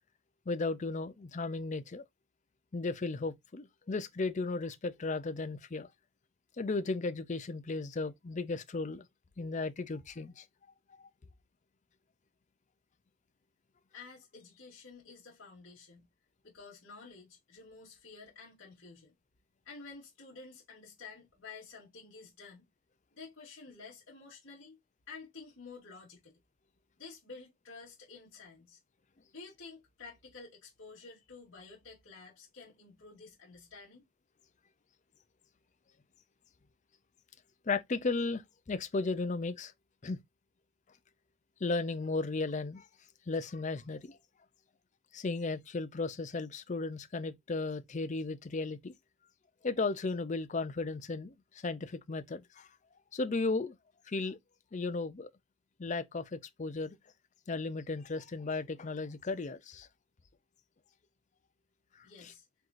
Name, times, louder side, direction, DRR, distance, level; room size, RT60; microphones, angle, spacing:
voice 1, 0.5-2.0 2.7-5.9 6.6-9.1 9.4-10.4 37.7-38.4 38.7-39.7 40.0-40.2 41.6-42.9 43.3-44.2 45.1-48.9 49.6-52.7 53.1-53.8 54.1-54.4 54.7-55.3 55.8-57.0 57.5-59.9 62.0-62.3, left 3 dB, 35° left, 0.5 m, -35 dB
voice 2, 13.9-16.1 16.4-19.1 19.6-22.7 23.1-24.8 25.1-26.4 27.0-28.8 29.3-34.0 62.0-62.4, left 4 dB, 55° left, 2.4 m, -51 dB
4.6 x 3.8 x 2.5 m
head